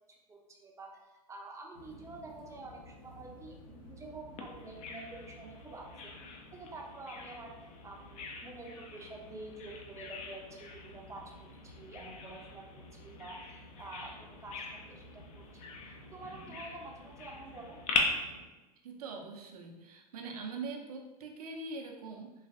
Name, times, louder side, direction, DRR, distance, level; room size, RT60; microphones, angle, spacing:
voice 1, 0.3-6.1 6.5-7.6 7.8-15.7 16.1-17.8, right 2 dB, 15° right, 0 dB, 0.6 m, -48 dB
sound 1, 1.7-18.4, left 1 dB, 50° left, 1.0 m, -54 dB
Bird vocalization bird call bird song, 4.4-18.0, left 5 dB, 35° left, 0.6 m, -42 dB
voice 2, 18.8-22.3, right 4 dB, 65° right, 2 dB, 0.7 m, -42 dB
4.0 x 3.1 x 2.5 m, 1.1 s
figure-of-eight pair, 90°, 21 cm